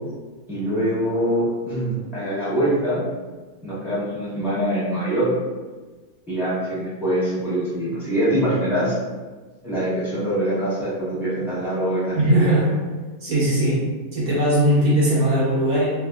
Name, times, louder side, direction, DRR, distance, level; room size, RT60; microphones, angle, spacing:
voice 1, 0.5-3.0 3.6-5.3 6.3-9.0 9.6-12.7, right 1 dB, ahead, -13 dB, 0.9 m, -24 dB
voice 2, 12.1-12.7 13.2-13.9 14.1-15.9, right 1 dB, 55° right, -7 dB, 1.1 m, -19 dB
3.3 x 2.5 x 2.3 m, 1.3 s
omnidirectional pair, 2.3 m